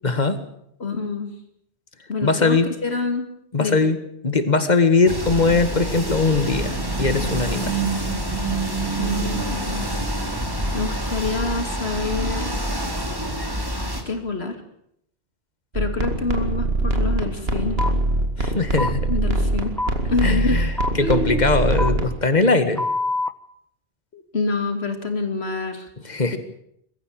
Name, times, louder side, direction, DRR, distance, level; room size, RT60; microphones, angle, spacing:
voice 1, 0.0-0.4 2.2-2.7 3.5-4.0 4.2-7.8 18.4-19.1 20.2-22.9 26.0-26.4, left 3 dB, 40° left, 10 dB, 2.0 m, -20 dB
voice 2, 0.8-1.3 2.1-3.3 3.6-3.9 9.0-9.9 10.7-12.6 14.1-14.6 15.7-17.8 19.1-19.7 20.1-20.6 21.0-21.5 24.1-25.9, left 3 dB, 70° left, 6 dB, 3.0 m, -27 dB
sound 1, 5.1-14.0, right 1 dB, 20° right, 3.0 m, -26 dB
sound 2, 15.7-22.1, right 2 dB, 65° right, 2.5 m, -23 dB
sound 3, 17.8-17.9 18.8-18.9 19.8-19.9 20.8-20.9 21.8-21.9 22.8-23.3, left 2 dB, ahead, 0.9 m, -24 dB
22.0 x 15.0 x 8.9 m, 0.73 s
omnidirectional pair, 1.1 m